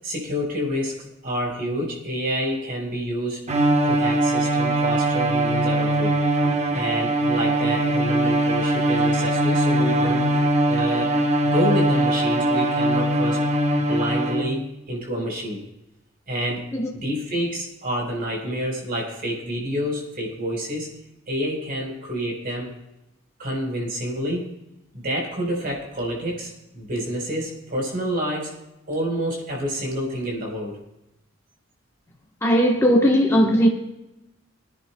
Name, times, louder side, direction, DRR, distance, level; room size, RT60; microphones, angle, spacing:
voice 1, 0.0-3.5 3.8-6.2 6.7-10.4 10.7-13.5 13.9-15.6 16.3-20.9 21.3-22.7 23.4-24.5 24.9-28.5 28.9-30.8, equal, 50° right, 4.1 m, -28 dB
Bowed string instrument, 3.5-14.7, right 1 dB, 35° right, 0.9 m, -21 dB
voice 2, 32.4-33.7, equal, 15° left, 1.1 m, -18 dB
25.0 x 10.5 x 2.2 m
head